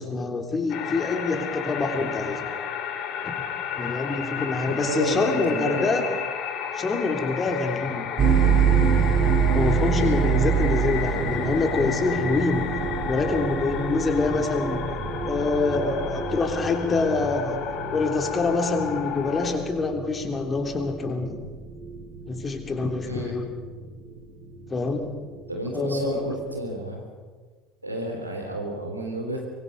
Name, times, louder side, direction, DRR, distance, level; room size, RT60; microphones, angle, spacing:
voice 1, 0.0-2.5 3.2-3.3 3.8-6.0 6.7-8.1 9.5-12.7 13.0-14.8 15.2-17.6 17.9-21.4 22.3-23.5 24.7-25.1 25.7-26.3, left 3 dB, 25° left, 5 dB, 3.2 m, -26 dB
sound 1, 0.7-19.5, left 8 dB, 50° left, 2.6 m, -32 dB
voice 2, 4.7-5.8 9.9-10.2 23.0-23.3 25.5-27.0 27.8-29.4, right 1 dB, 90° right, 2 dB, 3.8 m, -31 dB
sound 2, 8.2-26.8, right 6 dB, 35° right, 6.5 m, -27 dB
24.0 x 23.0 x 5.4 m, 1.5 s
figure-of-eight pair, 65°, 0 cm